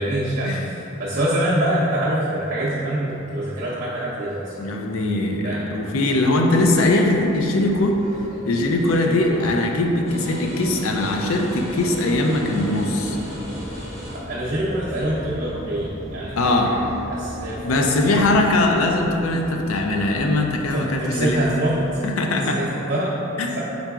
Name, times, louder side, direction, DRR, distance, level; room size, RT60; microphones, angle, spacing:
voice 1, 0.0-4.5 5.4-5.7 9.0-9.4 14.3-16.8 17.1-17.9 18.3-18.4 20.7-21.8 22.3-23.1, right 1 dB, 50° right, -10 dB, 0.6 m, -25 dB
voice 2, 4.6-8.0 8.5-13.2 16.4-16.7 17.6-21.4 22.0-22.6 23.4-23.5, left 2 dB, 80° left, 2 dB, 0.4 m, -21 dB
sound 1, 6.3-22.0, equal, 20° right, 0.8 m, -37 dB
sound 2, 10.1-15.3, equal, 35° left, 0.9 m, -39 dB
4.4 x 3.9 x 2.3 m, 3.0 s
head